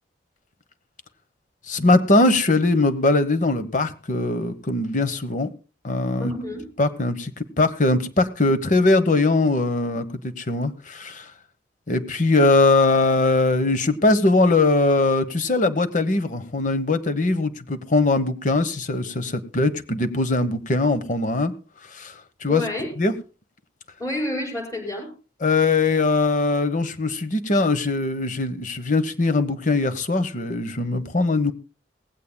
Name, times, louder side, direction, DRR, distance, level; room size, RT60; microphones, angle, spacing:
voice 1, 1.7-5.5 5.8-6.3 6.8-11.3 11.9-21.5 21.9-22.7 23.0-23.1 25.4-31.5, left 2 dB, 45° left, 11 dB, 1.1 m, -21 dB
voice 2, 6.2-6.7 22.5-22.9 24.0-25.1, left 1 dB, 20° left, 0 dB, 5.4 m, -29 dB
18.5 x 16.0 x 2.2 m, 0.35 s
head